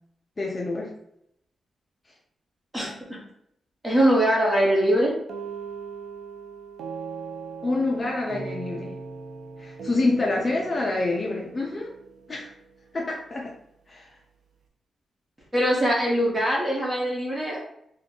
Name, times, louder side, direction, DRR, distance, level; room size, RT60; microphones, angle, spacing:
voice 1, 0.4-1.0 7.6-9.0 9.6-11.9 12.3-12.5 12.9-13.5 13.9-14.1, left 2 dB, 25° left, -2 dB, 0.5 m, -27 dB
voice 2, 2.7-3.2 3.8-5.2 15.5-17.6, right 1 dB, 15° right, -3 dB, 1.0 m, -22 dB
sound 1, 5.3-13.0, right 5 dB, 70° right, 0.5 m, -39 dB
2.9 x 2.6 x 3.6 m, 0.77 s
wide cardioid pair, 160°, 0 cm